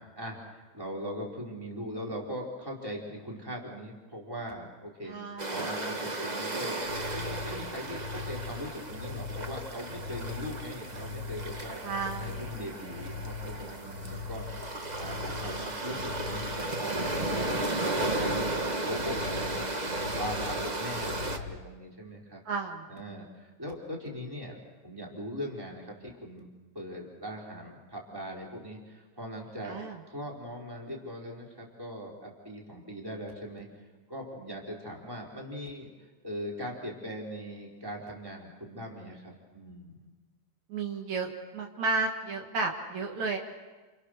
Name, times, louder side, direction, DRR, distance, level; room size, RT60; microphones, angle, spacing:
voice 1, 0.0-5.1 5.5-6.8 7.1-11.8 12.2-14.5 14.9-18.5 18.8-19.7 20.1-22.4 22.9-26.5 26.7-29.8 30.1-33.7 34.1-40.1, equal, 5° right, -2 dB, 4.2 m, -40 dB
voice 2, 5.1-5.6 11.8-12.5 22.5-22.8 29.6-30.0 40.7-43.4, right 4 dB, 70° right, 2 dB, 3.2 m, -33 dB
sound 1, 5.4-21.4, right 2 dB, 85° right, 0.3 m, -34 dB
sound 2, 6.8-21.6, left 5 dB, 80° left, 2.6 m, -41 dB
29.5 x 28.5 x 6.6 m, 1.3 s
omnidirectional pair, 3.5 m